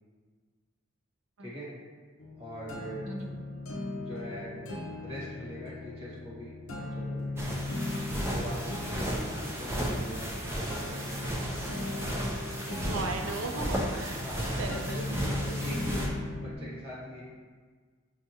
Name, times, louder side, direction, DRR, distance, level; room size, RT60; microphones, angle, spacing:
voice 1, 1.4-1.7 2.4-3.1 4.0-4.5 5.0-7.4 8.3-12.0 14.2-14.5 15.4-17.2, equal, 30° right, -8 dB, 1.3 m, -42 dB
sound 1, 2.2-16.6, left 2 dB, 85° left, 0.5 m, -38 dB
voice 2, 3.0-3.4 9.0-9.2 10.3-10.5 11.6-11.7 12.8-14.2 14.6-15.3, right 3 dB, 80° right, 2 dB, 0.5 m, -37 dB
sound 2, 7.4-16.1, equal, 10° right, 0.4 m, -34 dB
5.7 x 2.3 x 2.8 m, 1.5 s
head